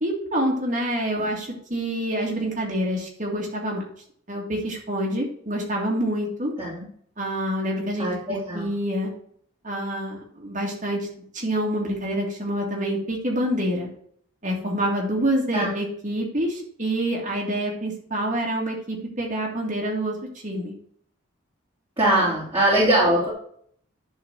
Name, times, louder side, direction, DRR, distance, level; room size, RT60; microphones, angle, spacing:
voice 1, 0.0-3.8 4.3-6.5 7.2-9.1 9.6-11.1 11.3-13.9 14.4-20.2 20.4-20.7 22.1-22.4, right 1 dB, 35° right, -1 dB, 2.0 m, -27 dB
voice 2, 8.0-8.7 15.5-15.7 22.0-23.3, right 1 dB, 20° right, -9 dB, 3.1 m, -21 dB
11.0 x 4.0 x 7.0 m, 0.62 s
head